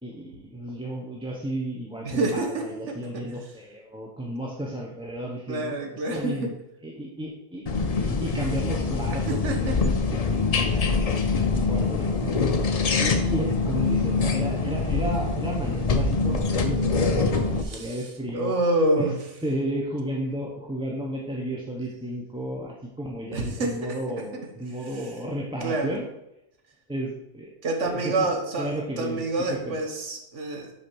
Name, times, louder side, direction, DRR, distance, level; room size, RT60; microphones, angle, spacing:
voice 1, 0.0-6.5 6.8-12.4 13.0-18.5 19.0-19.1 19.4-26.0 26.9-27.5 27.8-28.3 28.6-29.2 29.5-29.8, right 1 dB, 5° right, -3 dB, 0.9 m, -33 dB
voice 2, 2.0-3.2 5.5-6.5 9.3-9.8 12.7-12.8 17.6-18.0 18.3-19.2 23.3-23.9 24.3-24.5 25.6-26.0 27.6-28.7 29.0-30.7, right 2 dB, 85° right, 4 dB, 1.5 m, -27 dB
sound 1, 7.7-17.6, left 4 dB, 40° left, 0.6 m, -24 dB
6.0 x 5.1 x 6.2 m, 0.86 s
omnidirectional pair, 1.2 m